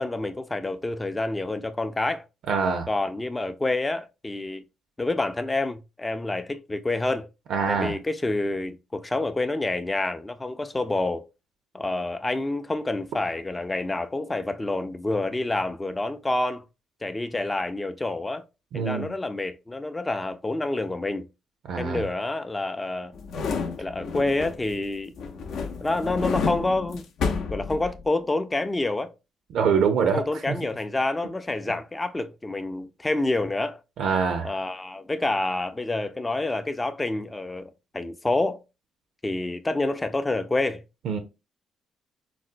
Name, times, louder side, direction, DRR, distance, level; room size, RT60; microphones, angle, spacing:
voice 1, 0.0-2.2 2.9-4.6 5.0-7.3 7.7-11.2 11.7-16.6 17.0-18.4 18.7-21.3 21.8-23.2 23.8-25.1 25.8-27.0 27.5-29.1 30.1-33.8 34.4-38.6 39.2-40.8, left 2 dB, 15° left, 0.4 m, -28 dB
voice 2, 2.5-2.9 7.5-8.0 18.7-19.1 21.6-22.0 29.5-30.6 34.0-34.5 41.1-41.2, right 6 dB, 75° right, 0.5 m, -24 dB
sound 1, 23.1-24.8 25.2-28.2 28.6-28.7, left 5 dB, 70° left, 0.5 m, -30 dB
4.0 x 2.1 x 2.5 m
cardioid pair, 90°, 0 cm